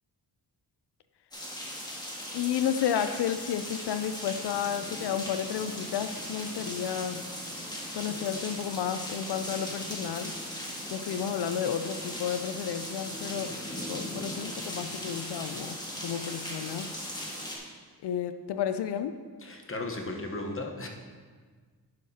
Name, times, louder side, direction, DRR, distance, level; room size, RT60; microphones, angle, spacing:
sound 1, 1.3-17.6, equal, 10° left, 1.6 m, -38 dB
voice 1, 2.3-7.2 7.9-10.3 10.9-13.6 13.9-15.8 16.0-16.9 18.0-19.2, left 9 dB, 75° left, 10 dB, 0.5 m, -32 dB
voice 2, 19.4-20.9, left 2 dB, 30° left, 2 dB, 1.1 m, -35 dB
10.5 x 6.5 x 2.8 m, 1.5 s
cardioid pair, 75°, 41 cm